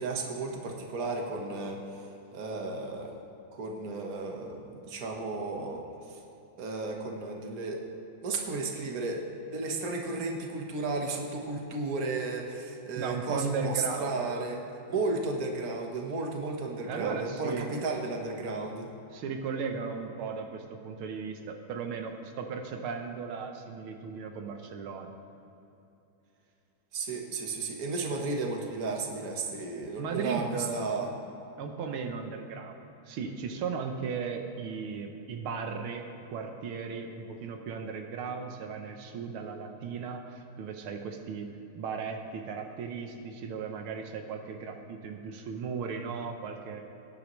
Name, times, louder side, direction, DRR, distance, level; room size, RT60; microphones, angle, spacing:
voice 1, 0.0-2.0 2.3-3.2 3.5-6.2 6.6-7.9 8.2-9.3 9.5-14.6 14.9-18.9 26.9-31.1, right 3 dB, 50° right, 1 dB, 1.6 m, -34 dB
voice 2, 13.0-14.5 16.9-17.8 19.1-25.1 30.0-30.9 31.6-32.8 33.1-41.5 41.8-46.8, right 5 dB, 85° right, 4 dB, 1.8 m, -36 dB
20.0 x 10.5 x 3.1 m, 2.9 s
omnidirectional pair, 2.3 m